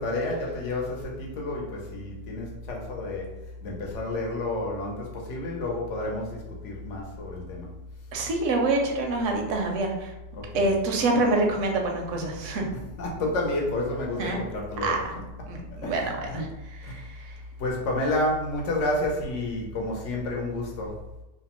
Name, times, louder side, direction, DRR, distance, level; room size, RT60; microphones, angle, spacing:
voice 1, 0.0-3.2 3.6-6.3 6.6-7.7 10.4-10.7 13.0-15.0 15.8-15.9 16.3-16.4 16.9-17.0 17.6-21.0, left 2 dB, 75° left, -1 dB, 1.0 m, -30 dB
voice 2, 8.1-10.1 10.5-12.7 14.2-14.4 14.8-15.2 15.5-17.3, right 2 dB, 80° right, 2 dB, 0.9 m, -26 dB
2.8 x 2.0 x 2.9 m, 1.0 s
omnidirectional pair, 1.3 m